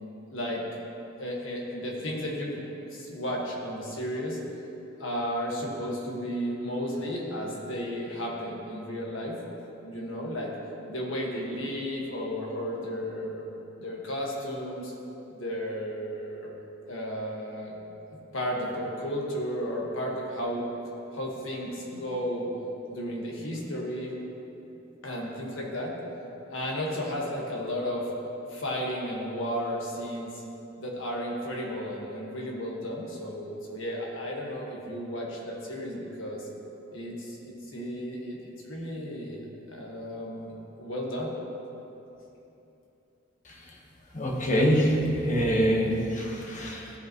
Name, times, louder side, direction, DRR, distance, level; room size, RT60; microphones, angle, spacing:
voice 1, 0.3-0.6 1.2-2.6 2.9-4.4 5.0-9.4 9.8-10.5 10.9-13.4 13.8-14.9 15.3-16.5 16.9-17.8 18.3-20.7 21.1-22.5 22.9-24.2 25.0-25.9 26.5-28.1 28.5-30.4 30.8-36.4 36.9-39.4 39.7-41.3, equal, 80° left, -2 dB, 1.5 m, -33 dB
voice 2, 44.1-46.9, equal, 40° left, -1 dB, 1.2 m, -25 dB
14.0 x 5.4 x 3.0 m, 2.9 s
head